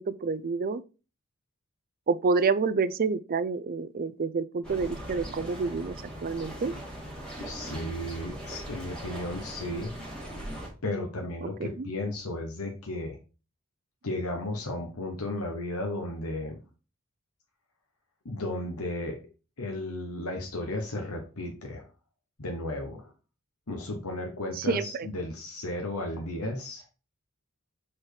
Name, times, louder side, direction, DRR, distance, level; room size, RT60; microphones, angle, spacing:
voice 1, 0.2-0.8 2.1-6.0 6.2-6.7 11.6-11.9 24.6-25.1, right 4 dB, 40° right, 0.4 m, -28 dB
sound 1, 4.6-10.7, right 1 dB, 5° left, 2.0 m, -40 dB
voice 2, 7.4-10.0 10.8-13.2 14.0-16.6 18.2-19.2 19.6-21.8 22.4-23.1 23.7-26.8, left 1 dB, 85° left, 1.1 m, -34 dB
4.8 x 4.4 x 4.7 m
head